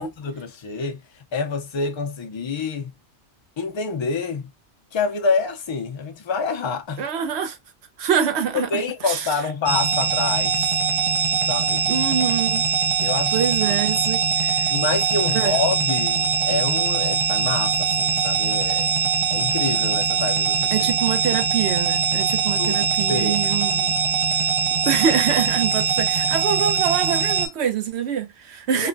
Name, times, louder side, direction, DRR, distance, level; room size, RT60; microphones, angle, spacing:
voice 1, 0.0-2.9 3.6-4.5 4.9-7.1 8.5-10.7 11.5-11.9 13.0-13.4 13.7-13.8 14.7-18.9 19.3-20.9 22.6-23.4 28.7-28.9, left 4 dB, 50° left, 0.3 m, -27 dB
voice 2, 7.0-7.6 8.0-9.4 11.9-12.6 13.0-14.7 15.3-15.6 20.7-24.0 24.9-28.9, right 8 dB, 70° right, 0.9 m, -25 dB
sound 1, 9.7-27.5, right 6 dB, 40° right, 0.4 m, -22 dB
3.0 x 2.1 x 2.4 m
omnidirectional pair, 1.2 m